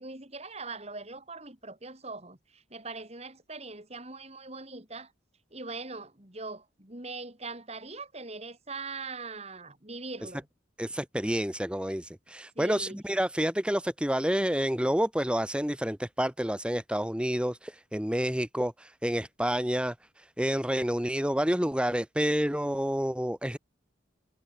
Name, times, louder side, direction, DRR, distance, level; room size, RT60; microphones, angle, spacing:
voice 1, 0.0-5.1 5.5-10.5 12.6-13.0, right 3 dB, 35° right, 3.8 m, -41 dB
voice 2, 10.8-23.6, equal, 5° right, 1.1 m, -29 dB
head